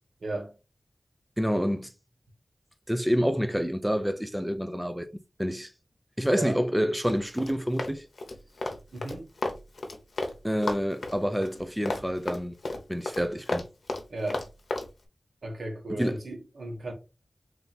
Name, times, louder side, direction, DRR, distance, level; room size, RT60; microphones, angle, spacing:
voice 1, 0.2-0.5 6.3-6.6 8.9-9.3 14.1-14.5 15.4-16.9, right 2 dB, 85° right, 1.3 m, -35 dB
voice 2, 1.4-1.9 2.9-5.1 5.4-5.7 6.2-8.0 10.4-12.5 12.9-13.7 15.9-16.2, equal, 5° right, 0.5 m, -28 dB
Run, 7.0-10.4 10.6-14.9, left 2 dB, 75° left, 0.8 m, -33 dB
3.3 x 2.8 x 4.0 m
wide cardioid pair, 95°, 0 cm